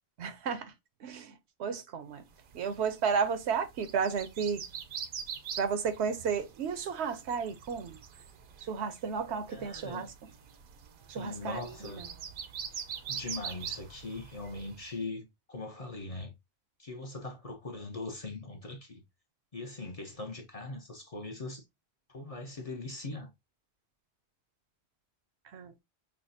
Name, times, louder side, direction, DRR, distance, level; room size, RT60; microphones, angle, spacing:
voice 1, 0.2-0.7 1.0-1.3 1.6-2.2 2.5-4.6 5.6-8.0 8.7-10.1 11.1-12.1 25.5-25.7, right 6 dB, 80° right, 0.9 m, -33 dB
sound 1, 2.4-14.9, right 7 dB, 60° right, 0.7 m, -44 dB
voice 2, 9.5-10.1 11.1-12.1 13.1-16.3 16.8-19.0 19.5-21.6 22.1-23.3, left 2 dB, 40° left, 0.6 m, -41 dB
5.7 x 2.0 x 2.6 m
omnidirectional pair, 1.1 m